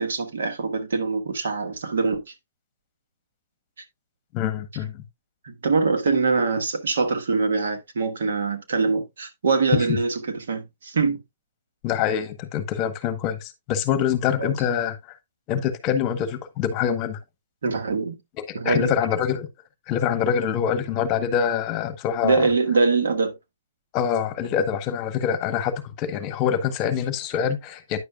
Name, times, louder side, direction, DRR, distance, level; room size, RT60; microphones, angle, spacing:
voice 1, 0.0-2.3 5.4-11.2 14.4-14.5 17.6-18.2 18.5-18.9 22.2-23.4, right 4 dB, 80° right, 1.4 m, -23 dB
voice 2, 4.3-5.0 9.7-9.8 11.8-15.0 15.5-17.2 18.6-19.5 19.9-22.5 23.9-28.0, left 8 dB, 30° left, 1.0 m, -25 dB
9.6 x 6.6 x 2.3 m
hypercardioid pair, 140°, 0 cm